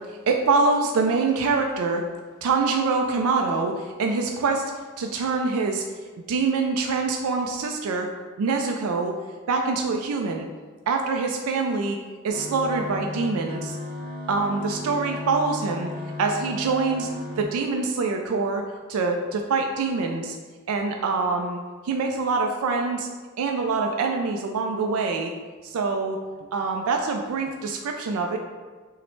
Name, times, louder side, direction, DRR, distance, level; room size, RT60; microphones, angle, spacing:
voice 1, 0.1-2.0 2.4-4.6 5.0-5.8 6.3-8.1 8.4-9.1 9.5-10.5 10.9-12.0 12.2-13.8 14.3-15.9 16.2-17.1 17.4-18.6 18.9-20.4 20.7-23.1 23.4-25.3 25.6-26.2 26.5-28.4, right 4 dB, 80° right, 3 dB, 0.3 m, -25 dB
sound 1, 12.3-17.4, left 1 dB, 45° right, 1.5 m, -35 dB
5.7 x 2.1 x 3.1 m, 1.4 s
head